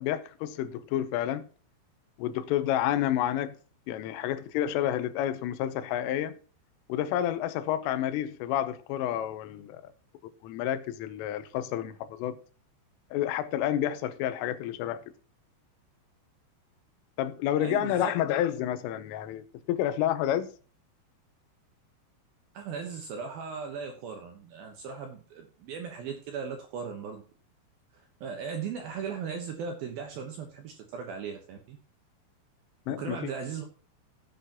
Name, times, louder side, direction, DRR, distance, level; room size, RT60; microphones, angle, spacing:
voice 1, 0.0-1.5 2.2-3.6 3.9-6.4 6.9-9.9 10.4-12.4 13.1-15.0 17.2-20.5 32.9-33.3, left 11 dB, 85° left, 3.4 m, -29 dB
voice 2, 17.6-18.1 22.5-27.2 27.9-31.8 32.9-33.6, right 6 dB, 70° right, 2.3 m, -37 dB
15.5 x 8.1 x 2.9 m
omnidirectional pair, 5.7 m